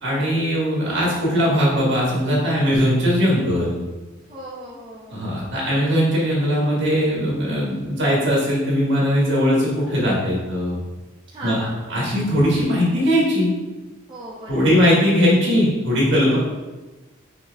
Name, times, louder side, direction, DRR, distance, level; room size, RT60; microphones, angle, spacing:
voice 1, 0.0-3.8 5.1-10.8 11.4-11.6 11.9-13.5 14.5-16.4, equal, 60° right, -5 dB, 1.5 m, -19 dB
voice 2, 4.3-5.2 11.3-12.1 14.1-14.9, right 1 dB, 25° right, -7 dB, 0.6 m, -37 dB
5.6 x 3.3 x 2.3 m, 1.2 s
head